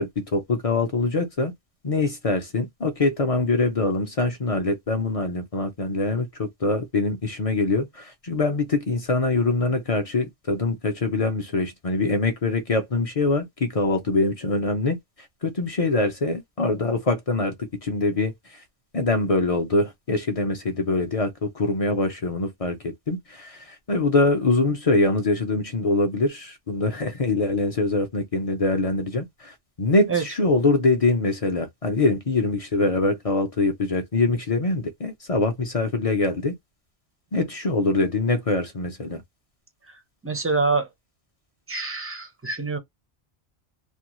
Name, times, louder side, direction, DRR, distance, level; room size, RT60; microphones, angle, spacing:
voice 1, 0.0-1.5 1.8-15.0 15.4-17.5 17.8-18.6 18.9-22.8 23.1-36.5 37.3-39.2, left 3 dB, 40° left, 0.5 m, -24 dB
voice 2, 40.2-40.9 41.7-42.8, right 4 dB, 20° right, 0.3 m, -25 dB
2.6 x 2.3 x 2.9 m
omnidirectional pair, 1.2 m